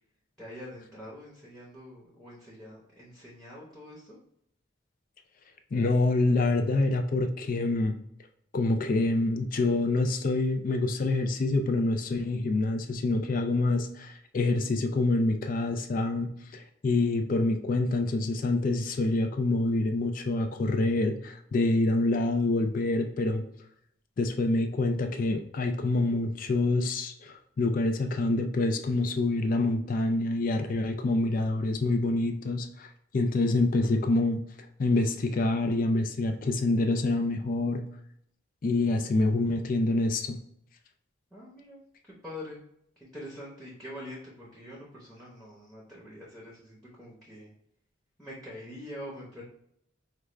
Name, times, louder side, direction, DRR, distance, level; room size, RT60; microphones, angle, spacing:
voice 1, 0.4-4.2 41.3-42.6 43.0-47.5 48.2-49.4, left 1 dB, ahead, -5 dB, 0.8 m, -45 dB
voice 2, 5.7-7.9 8.5-23.4 24.2-32.9 33.1-34.4 34.8-37.8 38.6-40.4, left 2 dB, 45° left, 6 dB, 0.4 m, -26 dB
4.9 x 2.3 x 3.2 m, 0.73 s
head